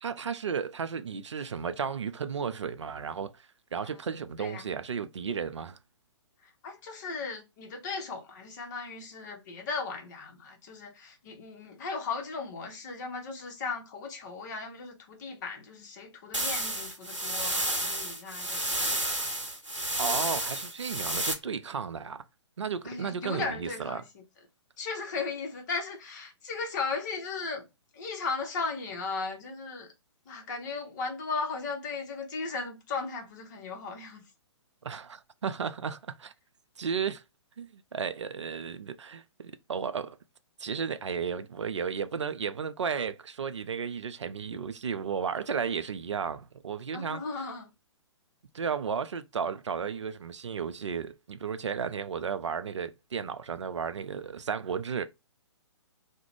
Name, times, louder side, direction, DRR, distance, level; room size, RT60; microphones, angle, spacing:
voice 1, 0.0-5.8 20.0-22.2 22.6-24.0 34.8-36.3 36.8-37.2 37.6-40.2 40.6-47.2 48.5-55.0, right 6 dB, 70° right, 0.4 m, -34 dB
voice 2, 4.4-4.7 6.6-18.7 22.8-24.2 24.8-27.7 27.9-29.9 30.3-34.2 46.9-47.7, left 4 dB, 40° left, 0.8 m, -36 dB
sound 1, 16.3-21.3, right 1 dB, 90° right, 0.8 m, -31 dB
2.4 x 2.1 x 3.1 m
figure-of-eight pair, 125°, 15 cm